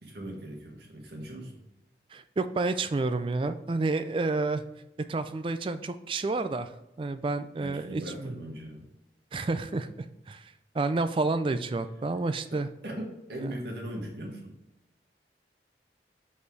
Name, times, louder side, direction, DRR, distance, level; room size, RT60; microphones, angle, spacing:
voice 1, 0.0-1.6 7.6-8.9 12.5-14.6, right 1 dB, 70° right, -1 dB, 1.7 m, -39 dB
voice 2, 2.1-4.6 5.1-6.7 7.0-8.3 9.3-9.9 10.3-12.7, right 3 dB, 30° right, 11 dB, 0.3 m, -30 dB
5.3 x 4.3 x 4.6 m, 0.93 s
head